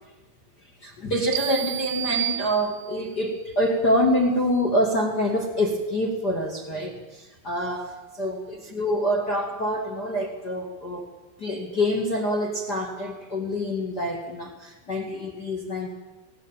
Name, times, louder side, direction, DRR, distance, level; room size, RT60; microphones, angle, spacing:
voice 1, 0.8-11.0 11.4-15.9, equal, 50° left, 3 dB, 1.2 m, -26 dB
sound 1, 1.3-3.1, right 14 dB, 80° right, 2.9 m, -30 dB
19.5 x 18.0 x 9.1 m, 1.1 s
omnidirectional pair, 6.0 m